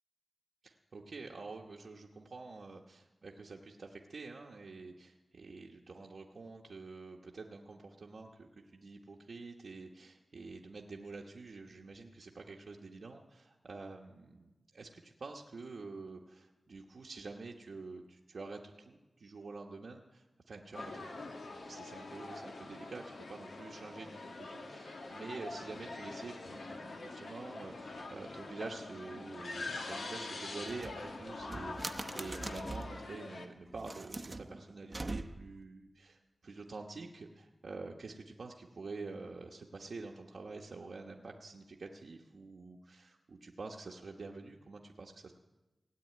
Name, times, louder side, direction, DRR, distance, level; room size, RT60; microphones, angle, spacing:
voice 1, 0.6-21.4 21.7-45.3, right 3 dB, 75° right, -1 dB, 1.1 m, -47 dB
sound 1, 20.7-33.5, left 3 dB, 90° left, 1.7 m, -44 dB
sound 2, 30.6-33.0 33.7-35.6, right 2 dB, 35° right, 0.8 m, -43 dB
17.5 x 8.4 x 9.4 m, 1.1 s
wide cardioid pair, 65°, 0 cm